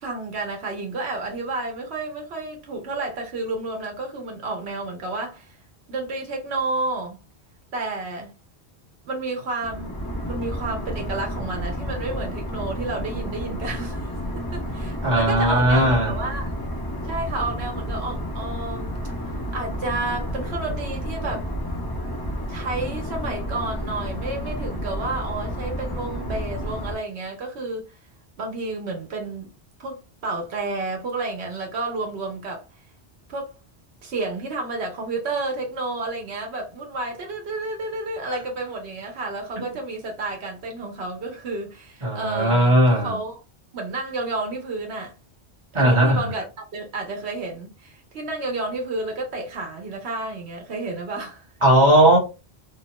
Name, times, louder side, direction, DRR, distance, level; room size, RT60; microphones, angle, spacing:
voice 1, 0.0-5.6 5.9-7.2 7.7-8.3 9.1-10.0 10.2-16.6 17.0-18.9 19.5-21.5 22.5-27.8 28.4-29.5 29.8-32.7 33.3-33.6 34.0-43.4 43.7-45.1 45.8-51.4, right 2 dB, 80° right, 1.0 m, -31 dB
sound 1, 9.6-27.0, equal, 25° left, 0.7 m, -31 dB
voice 2, 15.0-16.1 42.0-43.2 45.7-46.3 51.6-52.2, right 1 dB, 30° right, 1.1 m, -17 dB
2.9 x 2.1 x 2.9 m
omnidirectional pair, 1.1 m